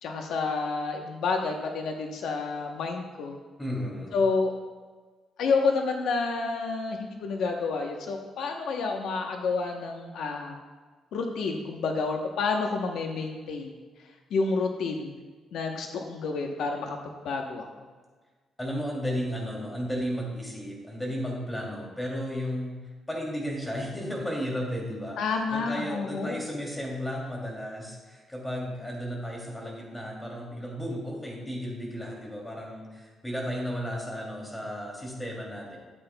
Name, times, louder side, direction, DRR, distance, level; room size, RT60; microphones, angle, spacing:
voice 1, 0.0-3.4 4.1-4.5 5.4-10.6 11.1-13.8 14.3-15.2 15.5-17.0 17.2-17.7 25.2-26.4, left 4 dB, 75° left, 3 dB, 0.9 m, -29 dB
voice 2, 3.6-4.2 18.6-22.8 23.1-25.2 25.5-35.8, equal, 10° left, -2 dB, 2.7 m, -34 dB
13.0 x 8.9 x 2.2 m, 1.4 s
cardioid pair, 130°, 0 cm